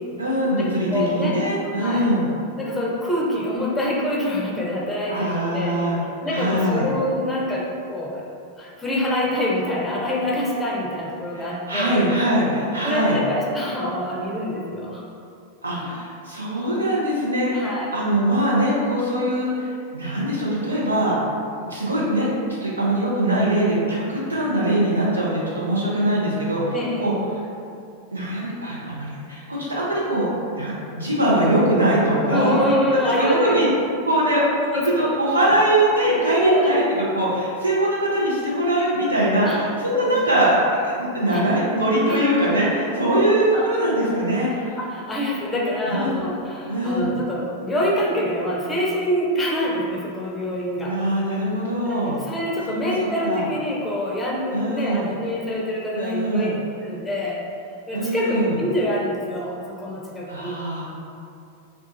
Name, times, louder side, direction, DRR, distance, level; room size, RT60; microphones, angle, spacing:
voice 1, 0.2-2.2 5.1-6.0 6.3-6.9 11.3-13.2 15.6-19.7 19.9-21.1 21.6-22.3 22.6-27.1 28.1-30.2 30.5-32.5 32.9-33.7 34.1-34.4 35.0-40.5 40.8-44.7 45.9-46.1 46.7-47.1 50.8-52.1 52.7-53.4 54.5-55.0 55.9-56.5 57.9-58.5 60.3-60.8, right 1 dB, 80° right, -6 dB, 0.7 m, -22 dB
voice 2, 0.9-1.4 1.7-2.1 2.6-5.8 6.2-8.3 8.6-12.0 12.8-15.0 15.7-15.9 17.5-17.9 26.7-27.3 32.3-33.7 34.6-34.9 35.4-35.6 36.4-37.1 39.4-39.6 39.9-40.3 41.2-41.5 42.1-42.7 43.5-43.7 44.8-51.0 51.9-56.5 56.8-57.4 57.9-60.6, left 1 dB, 10° left, -4 dB, 0.6 m, -26 dB
2.4 x 2.4 x 3.8 m, 2.5 s
figure-of-eight pair, 90°, 0 cm